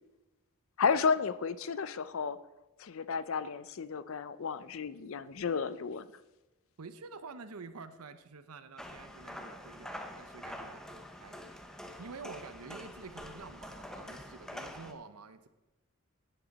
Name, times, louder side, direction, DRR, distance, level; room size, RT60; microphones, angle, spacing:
voice 1, 0.8-2.4 2.8-6.1, left 5 dB, 65° left, 15 dB, 0.5 m, -32 dB
voice 2, 6.8-11.6 12.0-15.5, right 4 dB, 85° right, 11 dB, 0.7 m, -48 dB
sound 1, 8.8-14.9, left 1 dB, ahead, 0.6 m, -46 dB
11.0 x 9.0 x 4.1 m, 1.1 s
head